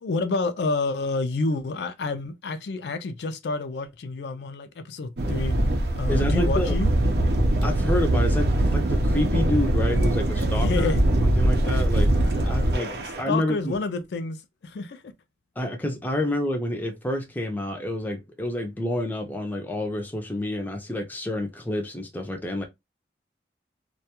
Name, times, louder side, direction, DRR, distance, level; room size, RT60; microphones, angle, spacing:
voice 1, 0.0-5.6 5.9-6.9 10.4-11.0 12.2-15.0, left 3 dB, 70° left, 0.4 m, -29 dB
sound 1, 5.2-13.2, right 1 dB, 65° right, 0.5 m, -22 dB
voice 2, 6.1-6.8 7.6-10.9 11.2-12.1 12.4-13.8 15.6-22.6, left 1 dB, 10° left, 0.5 m, -28 dB
2.3 x 2.2 x 2.8 m
head